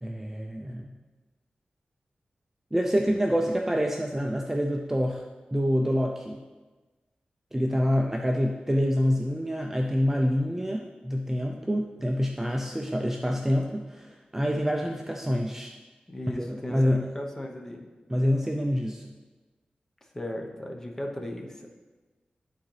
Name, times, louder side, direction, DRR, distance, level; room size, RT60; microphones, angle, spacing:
voice 1, 0.0-0.9 2.7-5.2 5.5-6.4 7.5-15.7 16.3-17.1 18.1-19.1, equal, 10° right, 1 dB, 0.4 m, -26 dB
voice 2, 16.1-17.8 20.1-21.7, left 1 dB, 15° left, 1 dB, 0.8 m, -36 dB
11.0 x 3.8 x 3.2 m, 1.3 s
wide cardioid pair, 125°, 3 cm